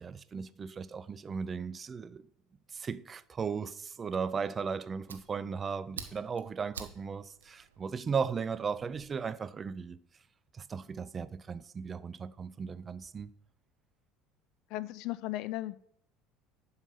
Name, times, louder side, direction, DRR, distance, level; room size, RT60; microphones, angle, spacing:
voice 1, 0.0-2.3 2.7-10.0 10.5-13.3, right 6 dB, 30° right, 0.5 m, -36 dB
Fire, 4.5-9.1, right 6 dB, 85° right, 0.9 m, -50 dB
voice 2, 14.7-15.7, left 16 dB, 60° left, 0.5 m, -36 dB
11.0 x 5.7 x 5.7 m
hypercardioid pair, 65°, 0 cm